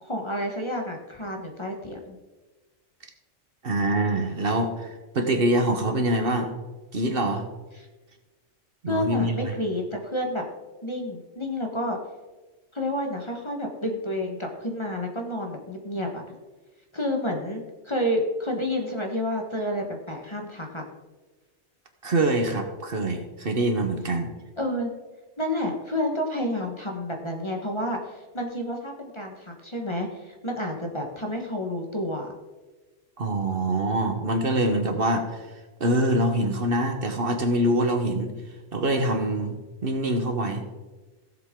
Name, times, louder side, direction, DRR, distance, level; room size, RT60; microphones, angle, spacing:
voice 1, 0.0-2.2 7.8-7.9 8.9-10.4 10.8-12.0 12.7-16.2 16.9-20.8 24.6-24.9 25.4-32.3, left 1 dB, 25° left, 2 dB, 1.4 m, -30 dB
voice 2, 3.6-6.5 6.9-7.5 8.8-9.4 22.0-24.3 33.2-35.5 35.8-38.3 38.7-40.7, right 1 dB, 50° right, 4 dB, 1.3 m, -25 dB
16.5 x 7.5 x 3.7 m, 1.2 s
omnidirectional pair, 1.2 m